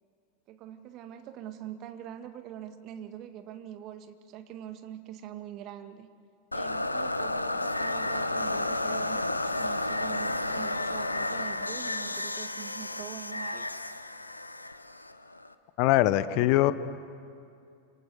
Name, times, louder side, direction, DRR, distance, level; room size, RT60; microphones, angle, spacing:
voice 1, 0.5-6.1 6.5-13.7, right 10 dB, 40° right, 8 dB, 1.9 m, -43 dB
sound 1, 6.5-15.5, left 2 dB, 85° left, 1.1 m, -32 dB
voice 2, 15.8-16.7, left 15 dB, 45° left, 14 dB, 1.1 m, -22 dB
29.0 x 26.5 x 7.8 m, 2.4 s
figure-of-eight pair, 90°, 0 cm